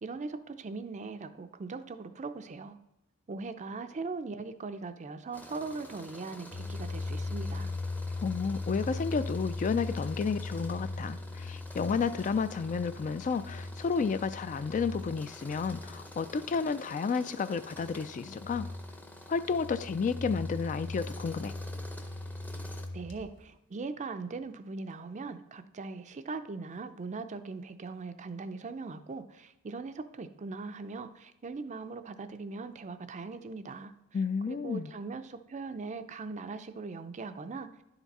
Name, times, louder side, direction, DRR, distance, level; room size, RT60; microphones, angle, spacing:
voice 1, 0.0-2.8 3.3-7.7 22.9-33.9 34.5-37.7, right 4 dB, 35° right, 10 dB, 0.4 m, -40 dB
Tools, 5.3-22.9, left 1 dB, 10° left, 0.6 m, -49 dB
sound 1, 6.5-16.5 17.7-23.3, left 2 dB, 60° left, 1.2 m, -39 dB
voice 2, 8.2-18.7 19.3-21.5 34.1-34.9, left 5 dB, 35° left, 13 dB, 0.3 m, -31 dB
10.5 x 5.9 x 4.1 m, 0.93 s
head